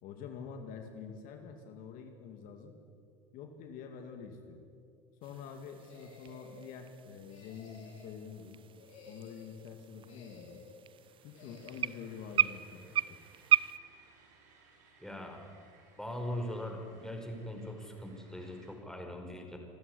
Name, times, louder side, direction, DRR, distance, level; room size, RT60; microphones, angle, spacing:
voice 1, 0.0-2.8 3.3-4.6 5.2-8.6 9.0-10.6 11.2-13.0, left 6 dB, 60° left, 5 dB, 2.5 m, -47 dB
sound 1, 5.2-13.8, right 10 dB, 35° right, 0.5 m, -36 dB
sound 2, 5.8-6.7 7.3-8.2 8.7-9.6 10.0-10.8 11.3-12.0, left 4 dB, 80° left, 6.5 m, -55 dB
sound 3, 10.9-18.7, right 4 dB, 60° right, 7.5 m, -63 dB
voice 2, 15.0-15.4 16.0-19.6, left 1 dB, 5° left, 3 dB, 5.1 m, -40 dB
26.5 x 13.0 x 9.8 m, 2.3 s
hypercardioid pair, 90°, 16 cm